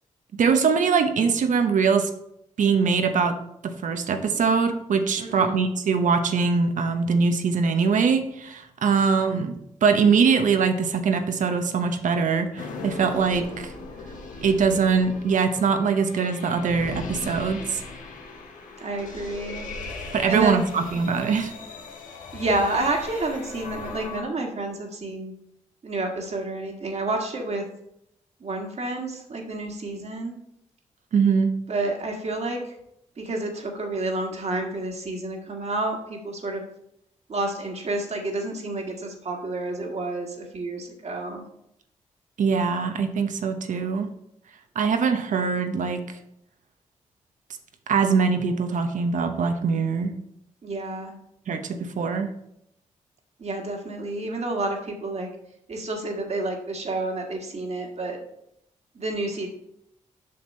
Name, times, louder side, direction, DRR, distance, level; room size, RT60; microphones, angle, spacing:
voice 1, 0.4-2.1 2.6-3.4 3.6-9.5 9.8-13.7 14.4-17.8 20.1-21.5 31.1-31.5 42.4-44.1 44.7-46.0 47.9-50.1 51.5-52.3, right 5 dB, 75° right, 7 dB, 0.9 m, -22 dB
voice 2, 5.2-5.6 18.8-19.7 20.3-20.7 22.3-25.3 25.8-27.6 28.4-30.3 31.7-32.6 33.2-36.6 37.3-41.4 50.6-51.1 53.4-55.3 55.7-58.2 59.0-59.5, right 2 dB, 55° right, 1 dB, 1.8 m, -29 dB
sound 1, 12.6-24.2, left 3 dB, 80° left, 1.2 m, -38 dB
7.6 x 6.0 x 4.3 m, 0.79 s
supercardioid pair, 50°, 13 cm